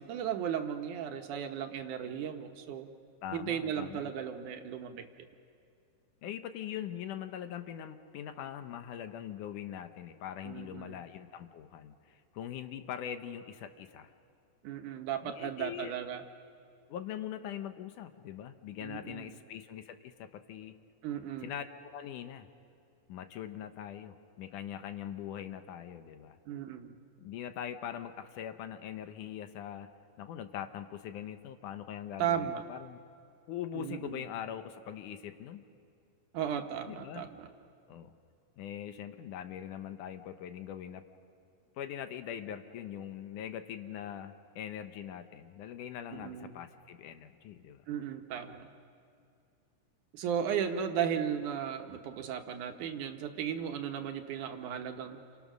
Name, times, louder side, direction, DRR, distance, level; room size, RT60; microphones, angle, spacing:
voice 1, 0.0-2.9 3.3-5.0 10.5-11.0 14.6-16.2 18.8-19.4 21.0-21.5 26.5-26.9 32.2-32.6 33.7-34.2 36.3-37.5 46.1-46.5 47.9-48.7 50.1-55.2, right 8 dB, 70° right, 6 dB, 2.4 m, -35 dB
voice 2, 3.2-4.1 6.2-14.1 15.2-16.0 16.9-20.8 21.4-21.7 21.9-22.5 23.1-26.4 27.2-29.9 30.2-33.0 33.5-35.6 36.9-37.3 37.9-38.1 38.6-41.0 41.8-47.8, left 10 dB, 75° left, 8 dB, 2.3 m, -42 dB
29.5 x 27.0 x 6.2 m, 2.4 s
omnidirectional pair, 3.9 m